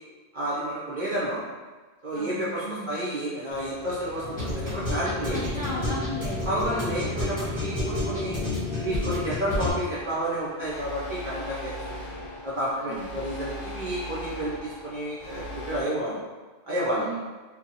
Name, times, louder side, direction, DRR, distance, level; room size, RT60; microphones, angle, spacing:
voice 1, 0.3-1.4 2.0-5.4 6.4-8.4 8.8-12.1 12.4-16.2 16.6-17.1, right 1 dB, 50° right, -8 dB, 0.6 m, -30 dB
voice 2, 2.1-2.9 5.3-6.8 12.8-13.1 16.9-17.2, equal, 50° left, -9 dB, 0.6 m, -36 dB
sound 1, 3.5-9.7, left 2 dB, 20° right, 0.9 m, -30 dB
sound 2, 9.9-15.8, left 1 dB, 85° left, 1.0 m, -39 dB
2.7 x 2.2 x 2.7 m, 1.3 s
omnidirectional pair, 1.2 m